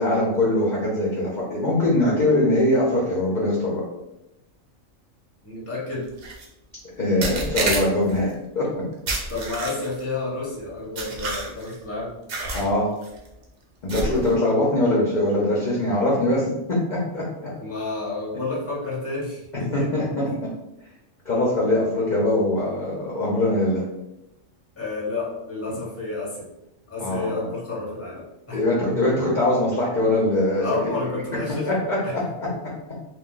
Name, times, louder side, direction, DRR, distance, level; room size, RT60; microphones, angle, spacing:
voice 1, 0.0-3.8 7.0-8.7 12.5-12.9 13.8-17.5 19.5-20.3 21.2-23.8 27.0-27.5 28.5-30.6 31.7-32.7, left 1 dB, 45° left, -5 dB, 0.6 m, -22 dB
voice 2, 5.4-6.1 9.3-12.2 17.5-19.9 20.2-20.4 24.8-26.5 26.9-28.6 28.9-29.0 30.6-32.1 32.4-32.5, left 3 dB, 15° left, -5 dB, 0.8 m, -30 dB
sound 1, 6.2-6.4 7.2-8.2 9.1-10.0 11.0-11.7 12.3-12.7 13.0-13.3 13.9-14.3, right 2 dB, 55° right, 0.7 m, -29 dB
2.6 x 2.1 x 3.7 m, 0.90 s
omnidirectional pair, 1.4 m